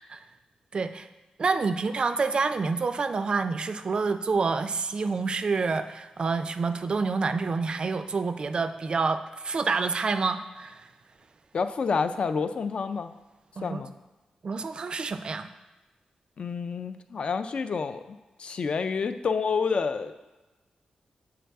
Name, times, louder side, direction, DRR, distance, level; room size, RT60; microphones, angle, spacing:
voice 1, 0.7-1.1 1.4-10.8 13.6-13.8 14.4-15.5, right 4 dB, 40° right, 10 dB, 0.3 m, -28 dB
voice 2, 11.5-13.2 13.6-13.9 16.4-20.1, left 5 dB, 50° left, 10 dB, 0.3 m, -29 dB
7.4 x 4.7 x 3.4 m, 1.1 s
wide cardioid pair, 135°, 2 cm